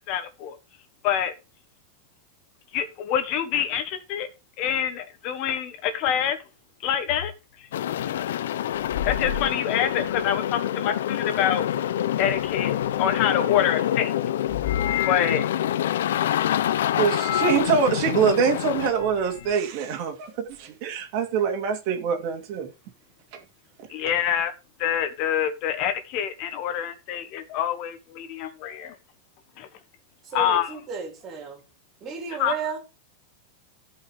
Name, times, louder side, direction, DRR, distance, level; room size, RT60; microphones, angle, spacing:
voice 1, 0.1-0.6 1.0-1.3 2.7-4.3 4.6-6.4 6.8-7.3 7.6-7.7 9.0-11.7 12.2-14.1 15.0-15.5 23.9-24.5 24.8-28.9 29.6-29.7 30.3-30.7 32.4-32.5, left 9 dB, 40° left, 1.4 m, -26 dB
sound 1, 7.1-7.3 8.7-10.4 12.3-13.4 14.5-15.6 17.1-17.7 18.7-19.6, left 9 dB, 70° left, 1.2 m, -32 dB
sound 2, 7.7-18.9, left 11 dB, 85° left, 0.7 m, -26 dB
voice 2, 17.0-22.7 23.3-23.4, right 6 dB, 45° right, 2.5 m, -24 dB
voice 3, 30.2-31.6 32.0-32.8, right 5 dB, 25° right, 3.6 m, -33 dB
14.5 x 5.6 x 5.1 m
supercardioid pair, 165°, 0 cm